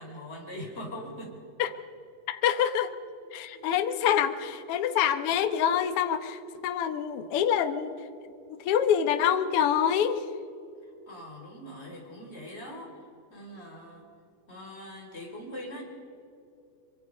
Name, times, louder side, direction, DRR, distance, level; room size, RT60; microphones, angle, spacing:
voice 1, 0.0-1.4 3.5-3.6 11.1-14.1 14.5-15.8, equal, 20° left, 0 dB, 4.5 m, -42 dB
voice 2, 2.3-2.9 3.3-7.9 8.5-10.2, left 9 dB, 65° left, 9 dB, 1.5 m, -26 dB
24.5 x 24.0 x 5.3 m, 2.6 s
omnidirectional pair, 3.9 m